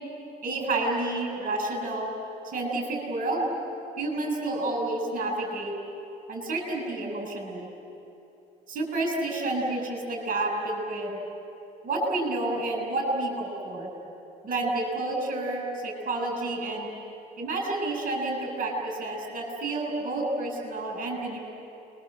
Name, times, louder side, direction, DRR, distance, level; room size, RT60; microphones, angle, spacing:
voice 1, 0.4-2.1 2.4-3.5 4.0-5.7 6.3-7.7 8.7-11.2 11.8-13.9 14.4-16.9 17.4-21.4, right 2 dB, 50° right, 1 dB, 7.9 m, -29 dB
29.5 x 22.5 x 7.9 m, 2.8 s
cardioid pair, 110°, 17 cm